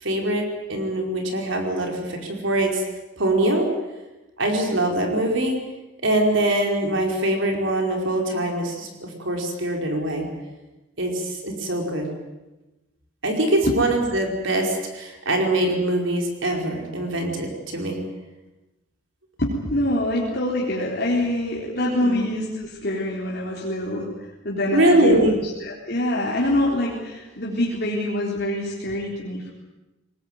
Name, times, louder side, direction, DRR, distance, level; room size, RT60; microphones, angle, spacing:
voice 1, 0.0-2.8 3.2-3.7 4.4-5.6 6.0-10.3 11.0-12.1 13.2-18.0 22.0-22.2 24.7-25.4, right 1 dB, 65° right, 2 dB, 5.0 m, -23 dB
voice 2, 19.4-29.5, left 1 dB, 50° left, -3 dB, 3.7 m, -25 dB
23.0 x 19.5 x 9.3 m, 1.0 s
head